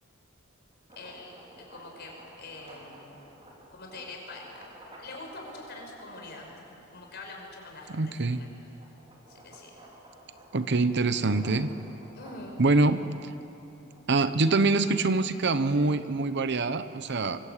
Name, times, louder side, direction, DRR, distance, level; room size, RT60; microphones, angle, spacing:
sound 1, 0.7-7.3 7.8-15.0, right 1 dB, 30° right, 4.4 m, -52 dB
voice 1, 1.0-2.1 2.4-3.2 3.7-4.6 5.0-6.6 6.9-8.1 8.4-8.5 9.3-9.8 12.1-12.6, left 2 dB, 55° left, 1 dB, 5.7 m, -44 dB
voice 2, 7.9-8.4 10.5-11.7 12.6-13.3 14.1-17.4, right 3 dB, 60° right, 12 dB, 0.9 m, -25 dB
24.0 x 23.0 x 8.4 m, 2.9 s
head